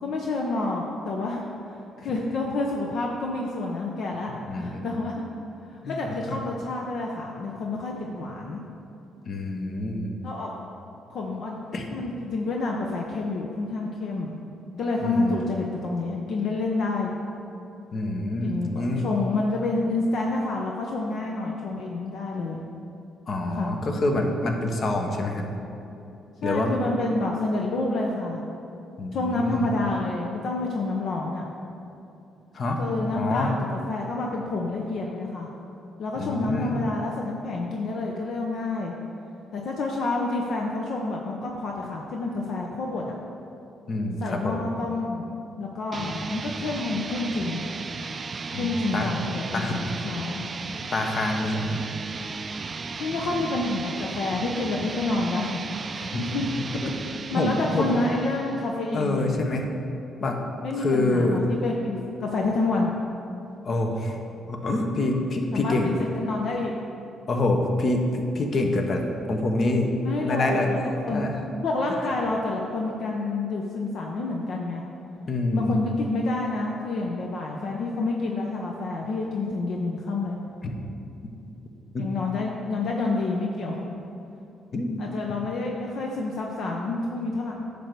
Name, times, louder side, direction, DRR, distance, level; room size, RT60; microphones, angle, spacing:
voice 1, 0.0-5.2 5.7-8.6 10.2-10.5 11.1-11.6 11.9-14.4 14.8-17.2 18.4-22.6 23.5-23.8 26.4-28.4 29.1-31.5 32.8-33.6 33.9-35.5 36.0-38.9 39.5-43.2 44.2-47.6 48.5-50.4 52.9-55.6 55.9-56.5 57.3-59.3 60.6-62.9 65.5-66.7 70.0-70.8 71.0-71.3 71.6-74.8 75.5-80.4 82.0-83.8 85.0-87.5, left 2 dB, 65° left, -1 dB, 0.7 m, -28 dB
voice 2, 4.5-4.8 5.8-6.0 9.3-10.1 11.7-11.9 15.0-15.4 17.9-19.1 23.3-25.4 26.4-26.8 29.0-29.7 32.5-32.8 33.1-33.5 36.2-36.7 43.9-44.7 48.5-49.1 49.5-49.8 50.9-51.8 56.1-56.4 56.8-57.0 57.3-57.9 58.9-59.7 60.2-60.4 60.8-61.4 63.6-64.2 64.5-65.9 67.3-68.0 68.3-69.9 70.2-70.7 71.1-71.3 75.3-75.8 80.6-80.7 81.9-82.1 84.7-85.1, left 2 dB, 50° left, 3 dB, 1.0 m, -26 dB
sound 1, 45.9-58.8, right 4 dB, 35° right, 0.3 m, -35 dB
10.0 x 3.4 x 6.6 m, 2.8 s
cardioid pair, 90°, 0 cm